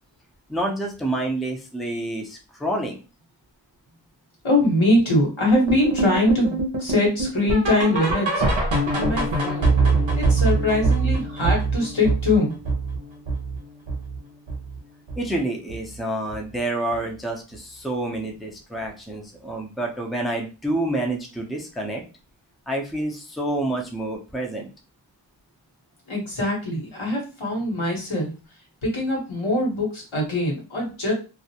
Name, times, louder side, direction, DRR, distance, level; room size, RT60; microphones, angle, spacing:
voice 1, 0.5-3.0 15.2-22.0 22.7-24.7, right 1 dB, ahead, 1 dB, 0.5 m, -28 dB
voice 2, 4.4-8.4 8.9-9.7 10.2-12.5 26.1-28.3 28.8-31.1, left 1 dB, 80° left, -2 dB, 1.1 m, -22 dB
sound 1, 5.7-14.8 15.1-15.4 15.7-15.8 16.3-16.4 16.9-17.0, right 3 dB, 70° right, 0.7 m, -24 dB
2.4 x 2.1 x 2.8 m, 0.32 s
wide cardioid pair, 40°, 47 cm